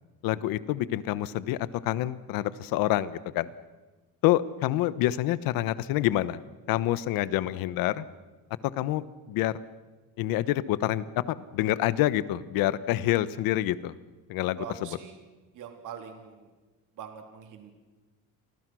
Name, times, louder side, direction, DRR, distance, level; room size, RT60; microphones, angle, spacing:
voice 1, 0.2-3.5 4.2-6.4 6.7-8.0 8.8-9.5 10.2-13.9 14.3-15.0, left 14 dB, 90° left, 16 dB, 1.2 m, -27 dB
voice 2, 14.6-15.1 15.6-16.5 17.0-17.7, right 8 dB, 65° right, 5 dB, 3.5 m, -42 dB
30.0 x 24.5 x 6.3 m, 1.3 s
cardioid pair, 140°, 34 cm